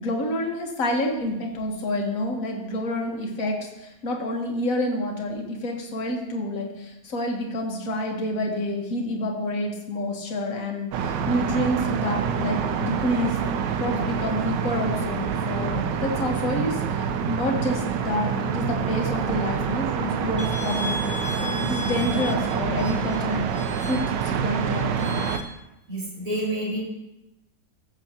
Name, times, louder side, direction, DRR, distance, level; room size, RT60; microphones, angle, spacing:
voice 1, 0.0-13.4 13.8-21.0 21.4-25.3, left 1 dB, 50° left, 1 dB, 1.8 m, -28 dB
sound 1, 10.9-25.4, right 7 dB, 90° right, 1.4 m, -27 dB
sound 2, 20.4-25.4, left 1 dB, 10° left, 0.4 m, -37 dB
voice 2, 25.9-26.8, right 1 dB, 50° right, -6 dB, 4.5 m, -28 dB
15.5 x 6.9 x 2.9 m, 0.91 s
omnidirectional pair, 1.9 m